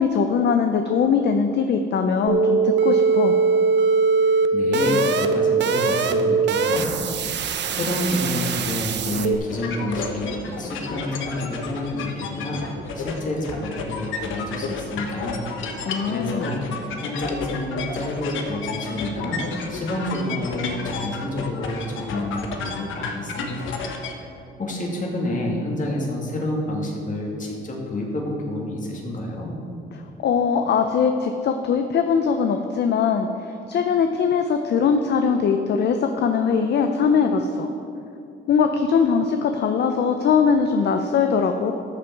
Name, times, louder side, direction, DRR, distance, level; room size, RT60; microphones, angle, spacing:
voice 1, 0.0-3.3 15.8-16.5 30.2-37.7 38.5-41.7, left 6 dB, 60° left, 6 dB, 0.6 m, -21 dB
sound 1, 2.3-9.4, right 4 dB, 60° right, 0.7 m, -21 dB
voice 2, 4.3-6.9 7.7-12.6 12.9-15.4 16.0-16.6 17.0-19.4 19.7-23.8 24.1-29.5, left 1 dB, 40° left, -2 dB, 2.4 m, -29 dB
sound 2, 9.5-24.1, left 4 dB, 80° left, 1.1 m, -32 dB
13.0 x 6.7 x 4.6 m, 2.7 s
cardioid pair, 90°, 20 cm